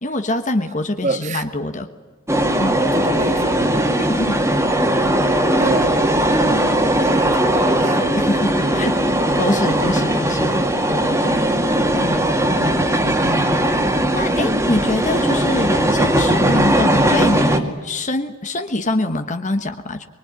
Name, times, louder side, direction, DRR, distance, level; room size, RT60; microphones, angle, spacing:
voice 1, 0.0-1.9 2.6-2.8 4.0-4.4 8.1-11.4 12.0-12.2 12.6-12.8 13.2-13.4 14.1-20.1, left 2 dB, 35° left, 7 dB, 1.3 m, -24 dB
voice 2, 1.0-1.5 2.8-3.9 4.8-5.3 5.6-5.9 6.3-6.7 7.0-8.1 11.5-12.0, right 2 dB, 35° right, 9 dB, 1.7 m, -27 dB
sound 1, 2.3-17.6, right 1 dB, 10° right, 2.3 m, -18 dB
24.0 x 23.0 x 9.6 m, 1.3 s
head